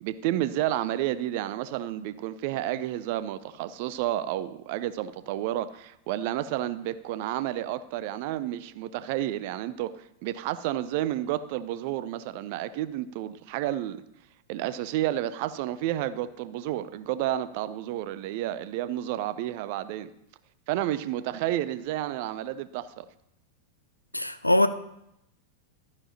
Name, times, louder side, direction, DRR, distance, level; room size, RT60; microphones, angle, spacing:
voice 1, 0.0-14.0 14.5-20.1 20.7-23.1, right 13 dB, 50° right, 0.5 m, -31 dB
voice 2, 24.1-24.7, left 1 dB, 85° left, 0.5 m, -22 dB
12.5 x 9.7 x 2.9 m
figure-of-eight pair, 90°, 0 cm